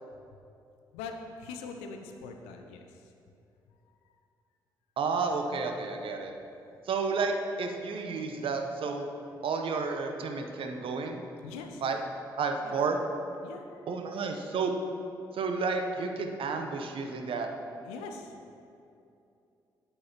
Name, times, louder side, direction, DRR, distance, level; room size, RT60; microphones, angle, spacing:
voice 1, 0.9-3.1 3.7-4.1 11.4-11.8 12.6-12.8 13.4-13.9 17.8-18.4, left 4 dB, 75° left, 4 dB, 0.5 m, -43 dB
voice 2, 5.0-6.3 6.8-9.1 9.4-11.2 11.8-12.0 12.4-13.0 13.9-14.7 15.3-17.5, right 4 dB, 55° right, 4 dB, 0.8 m, -31 dB
8.7 x 8.7 x 2.9 m, 2.6 s
hypercardioid pair, 40°, 11 cm